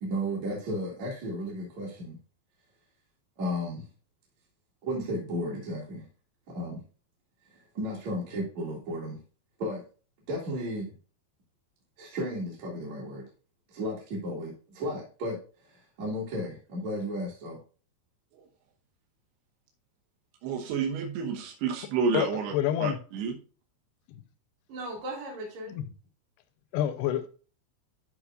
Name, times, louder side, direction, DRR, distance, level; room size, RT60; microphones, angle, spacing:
voice 1, 0.0-2.2 3.4-3.9 4.8-6.1 6.5-6.8 7.5-9.2 9.6-9.8 10.3-11.0 12.0-13.3 13.7-17.6 24.7-25.8, equal, 50° right, 3.1 m, -34 dB
voice 2, 20.4-22.5 22.8-23.3, right 5 dB, 80° right, 3.2 m, -29 dB
voice 3, 22.1-23.0 24.1-24.2 25.7-25.9 26.7-27.3, left 11 dB, 85° left, 2.6 m, -28 dB
13.0 x 5.2 x 2.4 m
omnidirectional pair, 4.7 m